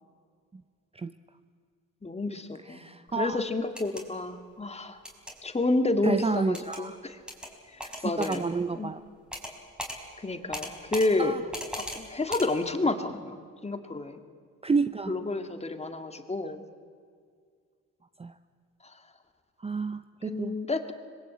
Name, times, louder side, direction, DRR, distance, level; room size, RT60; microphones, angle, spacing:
voice 1, 2.0-2.9 3.1-5.0 5.4-7.2 7.7-8.5 8.7-8.9 10.2-11.3 11.9-14.2 15.1-16.6 20.3-20.9, left 2 dB, 20° left, 7 dB, 2.2 m, -30 dB
voice 2, 2.6-3.4 6.0-7.0 8.0-9.0 11.2-11.4 14.6-15.2 18.2-18.3 19.6-20.5, right 4 dB, 20° right, 11 dB, 0.7 m, -30 dB
sound 1, 3.6-4.0 5.0-5.3 6.5-6.8 7.3-7.5 7.8-8.4 9.3-9.5 9.8-10.0 10.5-11.1 11.5-12.0 12.3-12.5, equal, 5° right, 4.8 m, -37 dB
25.5 x 21.0 x 8.5 m, 2.1 s
cardioid pair, 90°, 30 cm